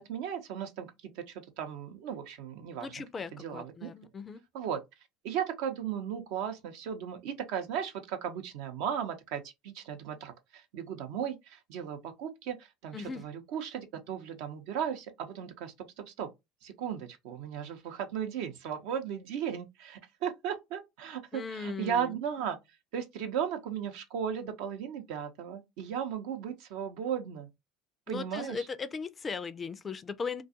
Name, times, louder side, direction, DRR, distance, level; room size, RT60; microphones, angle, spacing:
voice 1, 0.0-2.9 3.3-3.9 4.5-4.8 5.2-16.3 16.6-22.6 22.9-27.5 28.1-28.7, right 8 dB, 65° right, 0.6 m, -36 dB
voice 2, 2.8-4.4 12.9-13.2 21.3-22.2 28.1-30.4, left 5 dB, 30° left, 0.4 m, -38 dB
2.4 x 2.3 x 2.7 m
hypercardioid pair, 75°, 0 cm